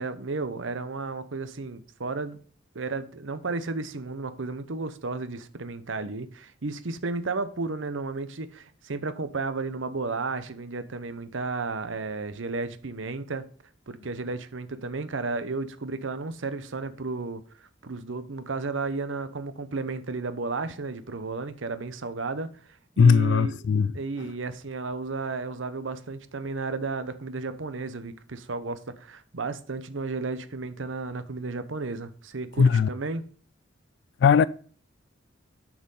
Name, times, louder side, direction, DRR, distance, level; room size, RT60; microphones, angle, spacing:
voice 1, 0.0-2.4 2.7-13.5 13.9-22.5 23.0-23.7 23.9-33.2, right 3 dB, 80° right, 0.8 m, -33 dB
voice 2, 23.0-23.9 32.6-32.9 34.2-34.5, left 6 dB, 65° left, 0.3 m, -18 dB
6.6 x 5.9 x 5.4 m
head